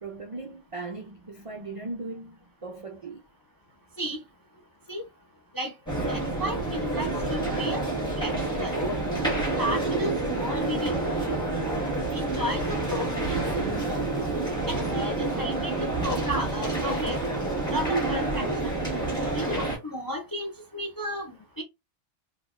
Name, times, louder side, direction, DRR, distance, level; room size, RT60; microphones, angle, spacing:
voice 1, 0.0-3.2, right 3 dB, 50° right, 0.4 m, -38 dB
sound 1, 5.9-19.8, right 2 dB, 5° left, 1.5 m, -28 dB
voice 2, 6.1-7.8 8.2-8.8 9.6-11.0 12.1-13.4 14.7-17.2 17.7-18.7 19.3-21.6, equal, 30° left, 0.4 m, -33 dB
4.0 x 2.7 x 2.4 m
omnidirectional pair, 1.3 m